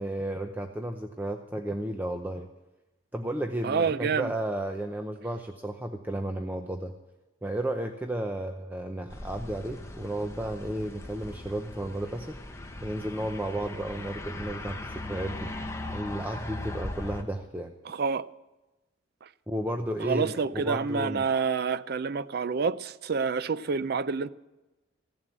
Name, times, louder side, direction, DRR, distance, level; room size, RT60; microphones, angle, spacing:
voice 1, 0.0-2.5 3.1-6.9 7.4-12.4 12.8-15.5 15.9-17.7 19.5-21.2, right 1 dB, 10° right, 0.6 m, -33 dB
voice 2, 3.6-4.3 17.9-18.3 19.2-19.3 20.0-24.3, right 5 dB, 55° right, 0.5 m, -28 dB
sound 1, 9.1-17.2, left 2 dB, 15° left, 1.0 m, -39 dB
15.5 x 7.4 x 9.1 m
head